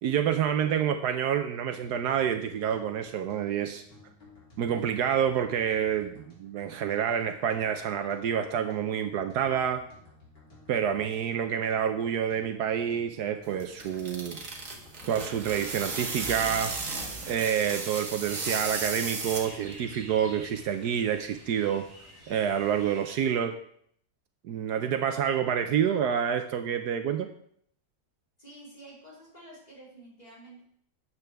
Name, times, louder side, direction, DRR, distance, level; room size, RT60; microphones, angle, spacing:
voice 1, 0.0-3.8 4.6-9.8 10.7-14.4 15.1-16.7 17.3-21.9 22.3-23.6 24.4-27.3, right 8 dB, 75° right, 8 dB, 1.2 m, -28 dB
sound 1, 1.8-21.0, left 1 dB, 80° left, 4.1 m, -55 dB
sound 2, 13.4-19.8, right 3 dB, 50° right, 1.9 m, -35 dB
sound 3, 17.7-23.3, equal, 10° right, 3.8 m, -49 dB
voice 2, 28.4-30.6, right 1 dB, 25° left, -6 dB, 4.1 m, -49 dB
12.5 x 8.5 x 3.4 m, 0.65 s
omnidirectional pair, 1.8 m